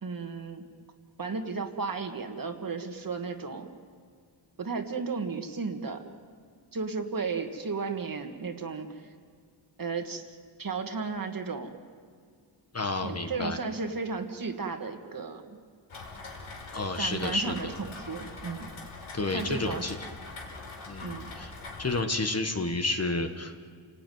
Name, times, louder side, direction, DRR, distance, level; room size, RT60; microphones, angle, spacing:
voice 1, 0.0-0.7 1.2-3.7 4.6-6.0 6.7-8.9 9.8-11.7 13.0-15.4 17.0-18.7 19.3-19.9 21.0-21.3, right 4 dB, 45° right, 5 dB, 2.1 m, -34 dB
voice 2, 12.7-13.6 16.7-17.7 19.1-20.0 20.9-21.5 21.8-23.7, left 2 dB, 30° left, 6 dB, 1.5 m, -30 dB
Rain, 15.9-22.0, left 3 dB, 90° left, 4.7 m, -43 dB
30.0 x 18.5 x 9.4 m, 2.1 s
wide cardioid pair, 135°, 47 cm